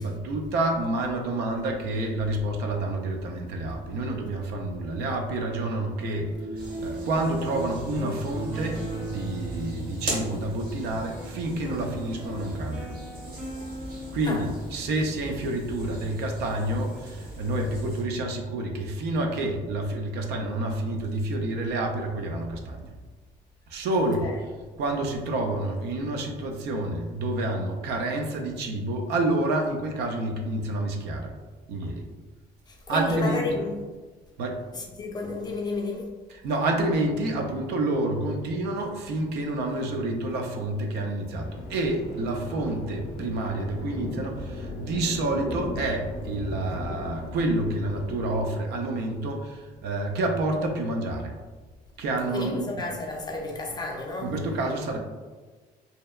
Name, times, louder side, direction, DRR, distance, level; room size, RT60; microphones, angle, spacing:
voice 1, 0.0-6.3 6.8-8.8 9.1-12.9 14.1-22.9 23.7-24.3 24.8-31.3 31.7-32.1 32.9-33.6 34.4-34.6 36.3-51.3 52.0-52.8 54.2-55.0, right 2 dB, 75° right, 0.4 m, -28 dB
sound 1, 5.9-14.7, right 2 dB, 35° right, 0.8 m, -38 dB
sound 2, 6.5-18.0, right 1 dB, 60° right, 1.1 m, -39 dB
voice 2, 32.7-33.8 34.7-36.1 52.3-54.3, left 2 dB, 25° left, 0.4 m, -31 dB
sound 3, 41.4-48.5, left 2 dB, 80° left, 0.4 m, -36 dB
2.7 x 2.1 x 2.2 m
cardioid pair, 110°, 17 cm